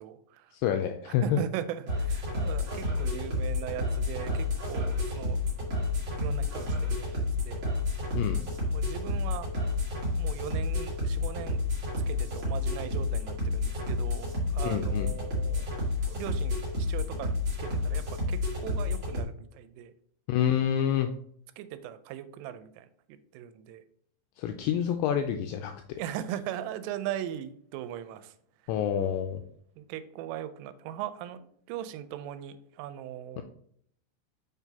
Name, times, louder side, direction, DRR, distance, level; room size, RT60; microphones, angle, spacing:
voice 1, 0.0-0.5 1.1-5.4 6.2-7.6 8.7-9.5 10.2-11.6 12.1-15.7 16.1-17.3 17.6-19.9 21.6-23.8 26.0-28.3 29.8-33.4, right 11 dB, 90° right, 12 dB, 3.1 m, -39 dB
voice 2, 0.5-1.4 8.2-8.4 14.6-15.1 20.3-21.1 24.4-26.0 28.7-29.4 33.4-33.5, left 9 dB, 85° left, 5 dB, 2.5 m, -28 dB
sound 1, 1.9-19.2, left 2 dB, 75° right, 1.1 m, -30 dB
7.0 x 6.0 x 2.8 m, 0.65 s
omnidirectional pair, 5.6 m